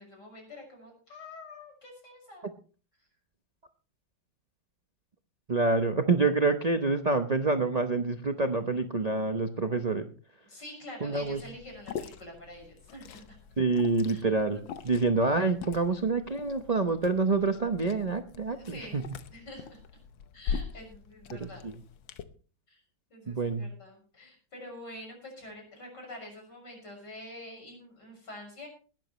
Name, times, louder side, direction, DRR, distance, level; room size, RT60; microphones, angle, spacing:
voice 1, 0.0-2.5 10.4-13.4 14.1-14.2 14.5-14.6 18.5-19.0 19.3-19.8 20.3-21.7 22.7-22.8 23.1-28.7, left 1 dB, 60° left, 1 dB, 6.9 m, -46 dB
voice 2, 5.5-10.1 11.0-11.4 13.6-14.6 14.8-19.0 21.4-21.7 23.3-23.7, right 3 dB, 80° right, 6 dB, 0.3 m, -27 dB
Liquid, 11.1-22.2, left 7 dB, 80° left, 1.7 m, -42 dB
19.5 x 12.0 x 3.1 m, 0.38 s
omnidirectional pair, 2.1 m